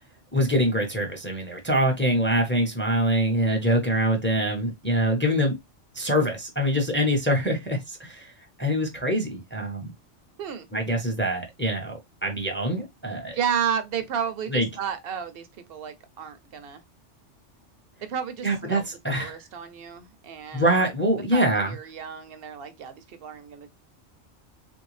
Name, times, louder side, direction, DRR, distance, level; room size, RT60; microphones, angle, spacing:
voice 1, 0.3-5.6 6.0-8.3 8.6-9.9 10.7-13.4 14.5-14.7 18.4-19.4 20.5-21.7, equal, 10° left, 0.6 m, -24 dB
voice 2, 13.3-16.8 18.1-18.8 19.1-20.7 21.3-23.7, right 7 dB, 60° right, 0.7 m, -32 dB
3.4 x 2.6 x 3.1 m
omnidirectional pair, 1.3 m